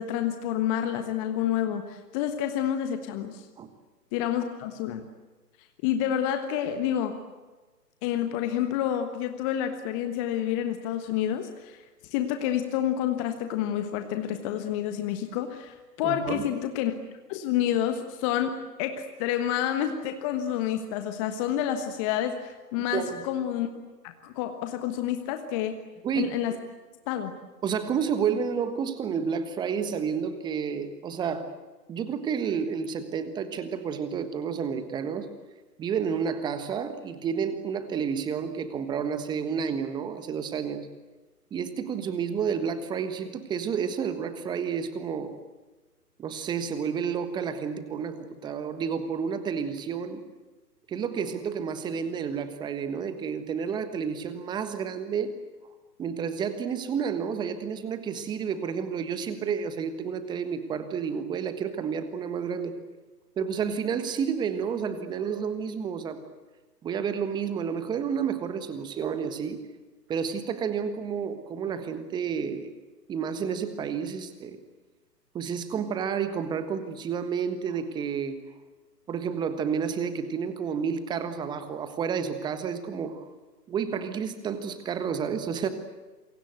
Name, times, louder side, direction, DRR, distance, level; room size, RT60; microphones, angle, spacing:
voice 1, 0.0-3.4 4.1-5.0 5.8-7.2 8.0-16.9 17.3-18.5 18.8-23.7 24.0-25.8 26.1-26.5 27.1-27.3, left 10 dB, 20° left, 7 dB, 1.4 m, -29 dB
voice 2, 16.0-16.5 22.9-23.2 26.0-26.3 27.6-31.5 31.9-35.3 35.8-40.9 41.5-45.3 46.2-50.2 50.9-55.3 56.0-62.7 63.4-66.2 66.8-69.6 70.1-72.7 73.1-74.6 75.3-78.4 79.1-83.3 83.7-85.7, right 7 dB, 10° right, 11 dB, 1.3 m, -30 dB
27.5 x 23.5 x 8.1 m, 1.2 s
figure-of-eight pair, 130°, 49 cm